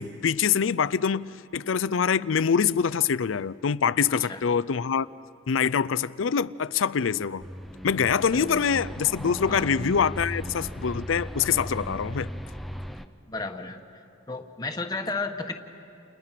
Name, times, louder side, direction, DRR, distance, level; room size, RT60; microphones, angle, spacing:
voice 1, 0.0-5.1 5.5-7.4 7.8-12.3, left 6 dB, 90° left, 0.5 m, -25 dB
voice 2, 4.1-4.4 8.3-8.6 9.5-9.7 13.3-13.8 14.3-15.5, left 3 dB, 20° left, 1.3 m, -33 dB
sound 1, 7.4-13.1, equal, ahead, 0.6 m, -37 dB
30.0 x 29.5 x 5.9 m
head